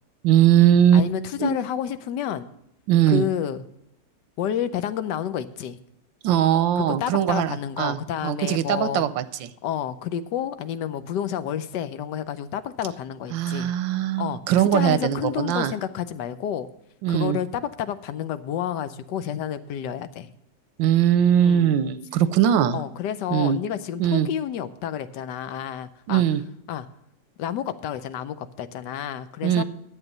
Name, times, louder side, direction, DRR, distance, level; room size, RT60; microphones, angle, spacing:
voice 1, 0.2-1.1 1.4-1.6 2.9-3.2 6.2-9.5 13.3-15.7 17.0-17.4 20.8-22.8 23.3-23.6 24.0-24.3 26.1-26.4 29.4-29.6, right 10 dB, 85° right, 14 dB, 1.4 m, -20 dB
voice 2, 0.9-2.5 3.1-3.6 4.4-5.8 6.8-9.1 9.6-13.7 14.2-14.4 14.7-16.7 17.1-20.3 21.4-21.7 22.7-26.2 26.7-26.9 27.4-29.6, left 9 dB, 75° left, 12 dB, 1.3 m, -30 dB
11.0 x 8.0 x 5.3 m, 0.81 s
omnidirectional pair, 2.0 m